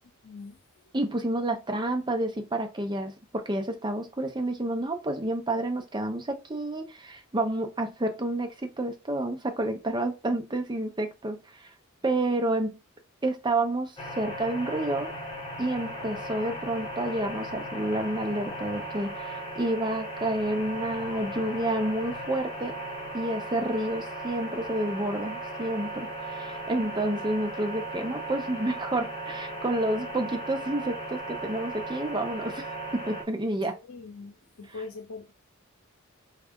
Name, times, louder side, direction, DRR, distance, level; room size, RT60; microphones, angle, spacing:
voice 1, 0.2-0.6 33.7-35.3, left 4 dB, 75° left, 0.7 m, -42 dB
voice 2, 0.9-11.7 12.0-12.8 13.2-15.1 15.6-22.8 23.1-33.8, right 1 dB, 20° right, 0.6 m, -29 dB
sound 1, 14.0-33.2, right 1 dB, 25° left, 1.3 m, -37 dB
4.0 x 2.4 x 3.5 m
head